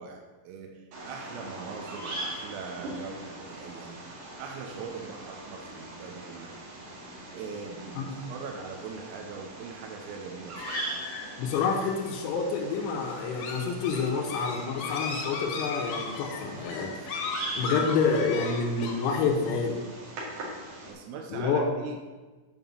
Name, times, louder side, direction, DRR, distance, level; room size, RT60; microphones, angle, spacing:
voice 1, 0.0-6.5 7.3-10.9 20.9-22.1, right 5 dB, 90° right, 2 dB, 3.5 m, -41 dB
Bird vocalization bird call bird song, 0.9-20.9, right 2 dB, 50° right, 2.9 m, -41 dB
sound 1, 10.6-18.9, left 5 dB, 70° left, 3.9 m, -37 dB
voice 2, 11.4-17.0 17.6-19.8 21.3-21.7, left 5 dB, 90° left, 0 dB, 3.9 m, -28 dB
9.0 x 5.5 x 7.4 m, 1.3 s
omnidirectional pair, 6.0 m